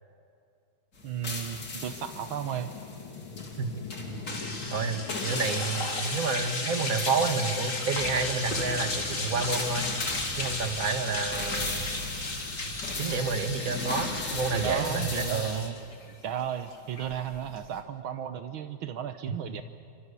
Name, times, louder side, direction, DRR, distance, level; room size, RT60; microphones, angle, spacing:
sound 1, 1.0-15.7, left 3 dB, 55° left, 3.8 m, -38 dB
voice 1, 1.0-2.7 14.5-15.8 16.2-19.6, right 9 dB, 75° right, 9 dB, 1.7 m, -34 dB
sound 2, 1.3-17.9, left 4 dB, 75° left, 2.9 m, -45 dB
sound 3, 4.3-17.8, left 3 dB, 40° left, 2.9 m, -34 dB
voice 2, 4.7-9.9 10.4-11.9 12.6-15.7, right 4 dB, 45° right, 7 dB, 2.1 m, -30 dB
28.5 x 24.5 x 8.4 m, 2.4 s
omnidirectional pair, 2.2 m